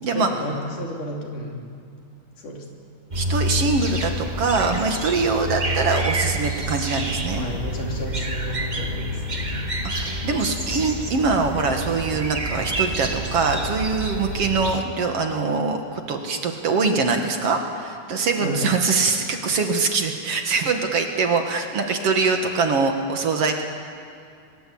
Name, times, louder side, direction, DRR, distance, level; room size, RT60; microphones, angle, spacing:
voice 1, 0.1-1.7 2.4-2.6 7.3-9.6 18.4-18.8, left 1 dB, 80° left, 0 dB, 4.8 m, -32 dB
sound 1, 3.1-14.8, right 1 dB, 30° right, 0.7 m, -28 dB
voice 2, 3.1-7.5 10.0-23.6, right 4 dB, 55° right, 4 dB, 2.5 m, -23 dB
23.5 x 22.0 x 8.6 m, 2.4 s
omnidirectional pair, 3.6 m